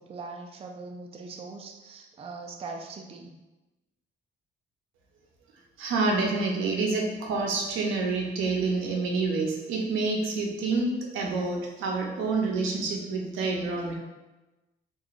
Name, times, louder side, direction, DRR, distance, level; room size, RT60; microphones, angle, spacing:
voice 1, 0.1-3.3, right 3 dB, 30° right, 2 dB, 0.3 m, -41 dB
voice 2, 5.8-13.9, right 3 dB, 85° right, 0 dB, 0.6 m, -28 dB
2.9 x 2.3 x 2.4 m, 1.1 s
cardioid pair, 90°, 20 cm